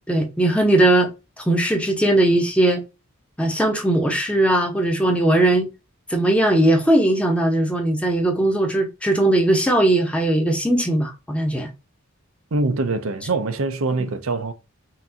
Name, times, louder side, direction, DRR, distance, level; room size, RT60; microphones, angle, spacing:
voice 1, 0.1-1.1 1.4-2.8 3.4-5.7 6.1-11.7 14.0-14.1, right 1 dB, 5° left, 0.8 m, -19 dB
voice 2, 12.5-14.5, right 3 dB, 70° right, 0.6 m, -23 dB
5.7 x 2.7 x 2.7 m
head